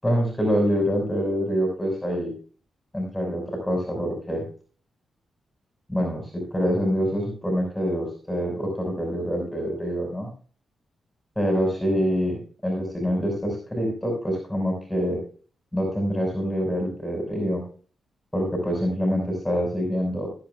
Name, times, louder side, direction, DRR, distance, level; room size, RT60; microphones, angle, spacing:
voice 1, 0.0-2.3 2.9-4.4 5.9-10.3 11.4-15.2 15.7-17.6 18.3-20.3, equal, 10° left, 0 dB, 5.7 m, -25 dB
22.5 x 9.2 x 2.3 m, 0.42 s
cardioid pair, 70°, 0 cm